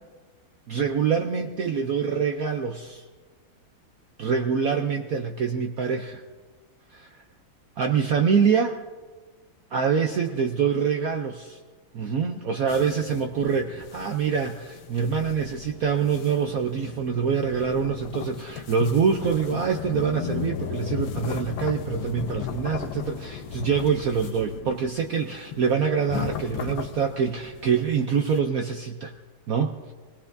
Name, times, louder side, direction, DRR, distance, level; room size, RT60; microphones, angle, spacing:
voice 1, 0.7-3.0 4.2-6.2 6.9-7.2 7.8-8.8 9.7-11.6 11.9-29.1 29.5-29.7, right 6 dB, 70° right, 4 dB, 0.8 m, -25 dB
sound 1, 12.7-28.4, left 9 dB, 75° left, 1.5 m, -36 dB
24.0 x 18.0 x 2.6 m, 1.4 s
omnidirectional pair, 2.2 m